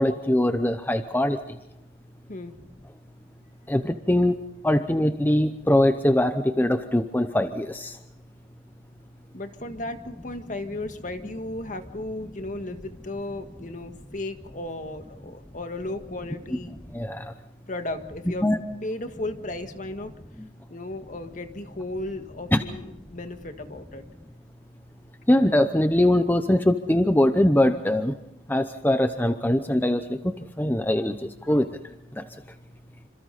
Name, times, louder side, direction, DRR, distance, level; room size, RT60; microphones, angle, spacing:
voice 1, 0.0-1.4 3.7-8.0 16.9-17.3 18.4-18.6 22.5-22.6 25.3-28.1 28.5-31.7 32.2-32.3, left 1 dB, 10° left, 8 dB, 0.8 m, -22 dB
voice 2, 9.3-16.7 17.7-18.5 18.8-20.1 20.7-24.1, left 2 dB, 45° left, 7 dB, 1.8 m, -35 dB
27.5 x 26.5 x 4.1 m, 0.93 s
head